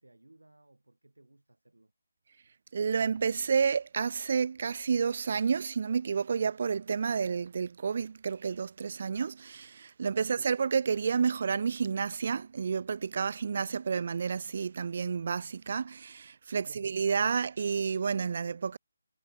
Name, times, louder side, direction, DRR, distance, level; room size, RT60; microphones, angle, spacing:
voice 1, 0.0-1.9 10.2-10.4 16.5-16.8, right 2 dB, 75° right, 3.4 m, -60 dB
voice 2, 2.7-18.8, right 6 dB, 45° right, 0.4 m, -30 dB
figure-of-eight pair, 150°, 0 cm